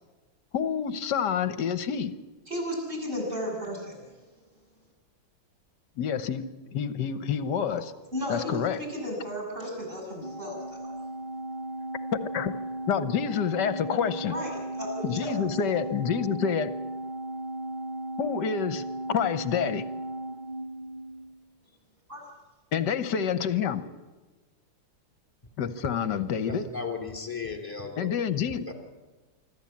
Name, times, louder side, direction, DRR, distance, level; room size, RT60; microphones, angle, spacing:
voice 1, 0.5-2.1 6.0-6.5 6.7-7.9 8.3-8.8 12.3-12.6 12.9-14.3 15.0-16.7 18.2-19.8 22.7-23.8 25.6-26.7 28.0-28.6, left 7 dB, 60° left, 12 dB, 1.5 m, -28 dB
voice 2, 2.5-3.9 8.1-10.9 14.2-15.4 22.1-22.2, equal, 25° right, 0 dB, 7.2 m, -34 dB
Organ, 10.2-21.5, right 1 dB, 55° right, 0.5 m, -36 dB
voice 3, 26.4-28.1 28.7-28.8, left 5 dB, 10° left, 3 dB, 3.1 m, -35 dB
25.0 x 13.5 x 8.6 m, 1.2 s
omnidirectional pair, 2.3 m